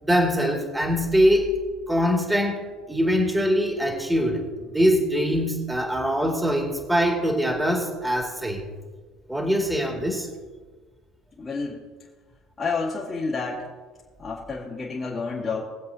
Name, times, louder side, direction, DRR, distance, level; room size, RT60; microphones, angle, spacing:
voice 1, 0.0-1.5 1.9-8.6 9.3-10.3, equal, 10° right, 1 dB, 2.3 m, -23 dB
voice 2, 11.4-11.8 12.6-13.7 14.2-15.7, left 4 dB, 30° left, -7 dB, 2.3 m, -29 dB
22.0 x 7.8 x 2.8 m, 1.4 s
hypercardioid pair, 65°, 0 cm